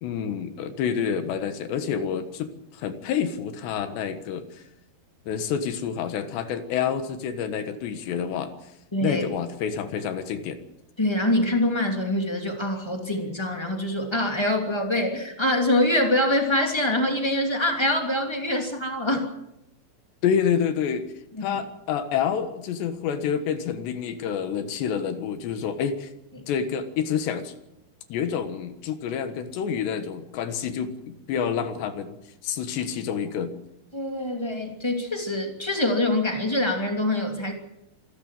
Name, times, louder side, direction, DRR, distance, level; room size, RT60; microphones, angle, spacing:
voice 1, 0.0-4.4 5.3-8.5 9.0-10.6 20.2-21.0 21.4-26.1 26.5-27.5 28.1-32.2 32.4-33.5, left 7 dB, 70° left, 9 dB, 3.4 m, -28 dB
voice 2, 8.9-9.2 11.0-19.3 21.4-21.6 33.9-37.5, left 1 dB, 10° left, 3 dB, 1.4 m, -24 dB
26.0 x 14.0 x 7.5 m, 0.85 s
omnidirectional pair, 5.6 m